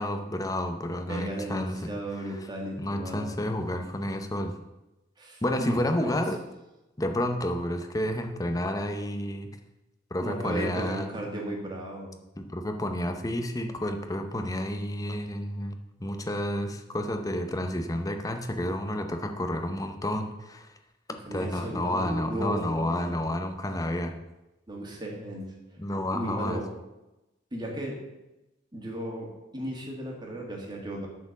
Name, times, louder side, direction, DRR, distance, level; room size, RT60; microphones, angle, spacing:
voice 1, 0.0-1.9 2.4-2.5 2.8-4.5 5.4-6.4 7.0-9.5 10.1-11.1 12.4-15.7 16.0-20.7 21.3-24.2 25.8-26.6, left 1 dB, 20° left, 6 dB, 0.7 m, -30 dB
voice 2, 1.1-3.3 5.2-6.1 10.2-12.1 21.3-23.4 24.7-25.5 26.1-26.7 27.5-28.0 28.7-31.1, right 1 dB, 25° right, -1 dB, 1.9 m, -35 dB
8.6 x 4.5 x 7.1 m, 0.98 s
head